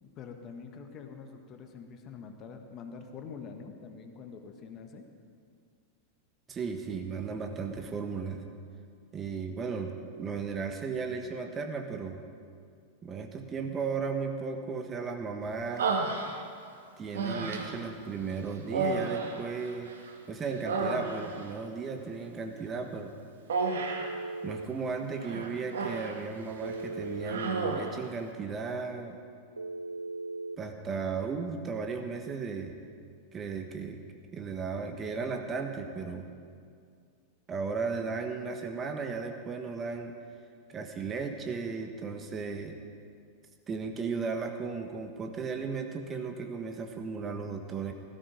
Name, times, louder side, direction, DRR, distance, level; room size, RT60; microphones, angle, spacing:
voice 1, 0.0-5.0, left 5 dB, 35° left, 5 dB, 1.6 m, -45 dB
voice 2, 6.5-8.4 9.1-12.2 13.0-15.9 17.0-19.9 20.3-23.1 24.4-29.2 30.6-32.8 33.3-34.0 34.3-36.3 37.5-40.2 40.7-42.8 43.7-47.9, right 5 dB, 25° right, 5 dB, 1.3 m, -35 dB
Human voice, 15.8-16.7 17.1-17.9 18.7-20.1 20.4-21.5 23.5-24.2 25.2-26.2 26.6-26.8 27.2-28.0, right 4 dB, 65° right, 1.6 m, -32 dB
Telephone, 23.7-24.7 26.6-27.6 29.6-30.6, right 2 dB, 80° right, 0.4 m, -38 dB
17.0 x 14.0 x 5.3 m, 2.2 s
figure-of-eight pair, 90°, 0 cm